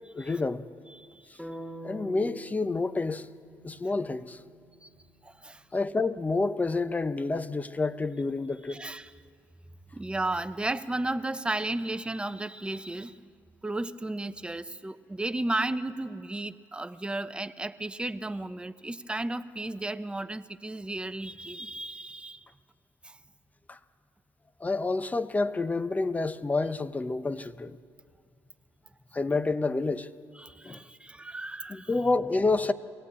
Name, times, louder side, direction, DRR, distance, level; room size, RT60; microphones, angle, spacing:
voice 1, 0.1-0.6 1.8-3.3 3.6-4.4 5.7-8.8 23.7-23.8 24.6-27.8 29.1-30.1 30.6-30.8 31.7-32.7, left 3 dB, 20° left, 0.9 m, -28 dB
voice 2, 0.9-1.3 4.8-4.9 5.2-5.6 8.7-9.1 9.9-13.3 13.6-22.5 23.0-23.2 30.4-31.9, right 2 dB, 15° right, 0.9 m, -34 dB
sound 1, 1.4-5.4, right 1 dB, ahead, 2.3 m, -45 dB
22.5 x 17.0 x 8.5 m
supercardioid pair, 65°, 7 cm